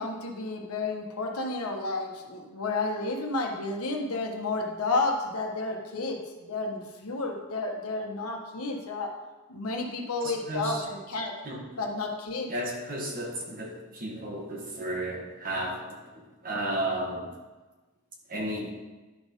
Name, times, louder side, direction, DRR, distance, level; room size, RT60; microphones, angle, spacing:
voice 1, 0.0-9.1 9.5-11.4 11.8-12.5, left 3 dB, 80° left, 2 dB, 1.3 m, -31 dB
voice 2, 10.2-10.8 11.4-11.6 12.5-15.8 16.4-17.3 18.3-18.7, right 1 dB, 40° right, 0 dB, 1.5 m, -33 dB
11.0 x 4.2 x 5.3 m, 1.2 s
head